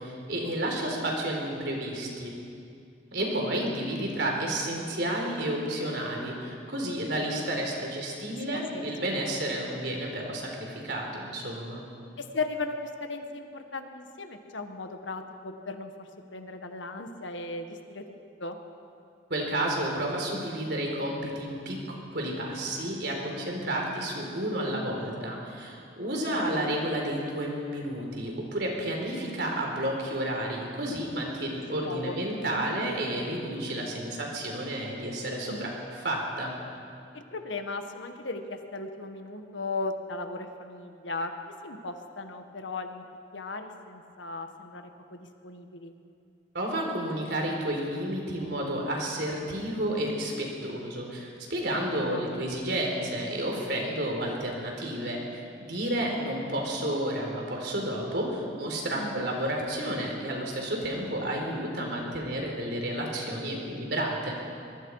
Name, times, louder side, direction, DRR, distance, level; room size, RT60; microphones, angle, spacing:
voice 1, 0.0-2.3 3.1-11.8 19.3-21.8 22.1-36.5 46.5-64.3, right 1 dB, 60° right, 0 dB, 4.2 m, -31 dB
voice 2, 8.5-8.9 12.2-18.0 18.4-18.6 26.3-26.7 31.8-32.2 35.5-35.7 37.1-43.0 43.3-45.9 51.8-52.2 58.9-59.3, left 3 dB, 80° left, 6 dB, 1.6 m, -37 dB
24.5 x 22.0 x 4.9 m, 2.4 s
head